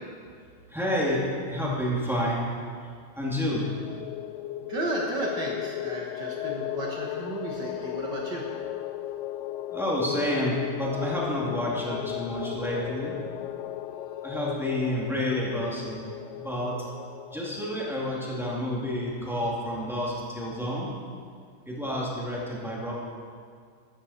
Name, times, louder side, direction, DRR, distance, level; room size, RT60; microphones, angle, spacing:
voice 1, 0.7-2.5 3.1-3.7 9.7-13.1 14.2-16.0 16.3-16.8 17.3-20.9 21.6-22.9, left 1 dB, ahead, -6 dB, 1.6 m, -29 dB
sound 1, 3.6-17.9, left 13 dB, 85° left, 2.2 m, -36 dB
voice 2, 4.7-8.5, right 2 dB, 65° right, -2 dB, 1.0 m, -33 dB
14.0 x 12.5 x 4.3 m, 2.1 s
omnidirectional pair, 3.9 m